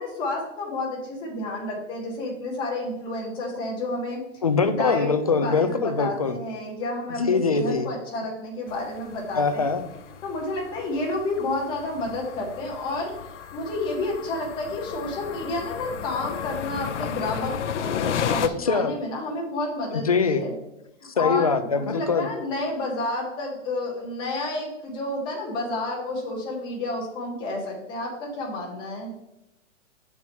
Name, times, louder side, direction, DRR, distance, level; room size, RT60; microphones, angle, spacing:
voice 1, 0.0-4.2 4.7-9.7 10.2-13.1 13.5-20.5 21.0-29.1, left 2 dB, 10° left, -2 dB, 1.3 m, -30 dB
voice 2, 4.4-6.4 7.2-7.9 9.3-9.8 18.4-18.9 20.0-20.4 21.2-22.3, left 4 dB, 30° left, 9 dB, 0.4 m, -23 dB
sound 1, 8.7-18.5, left 8 dB, 65° left, 0.7 m, -34 dB
7.5 x 4.6 x 5.3 m, 0.89 s
hypercardioid pair, 175°, 38 cm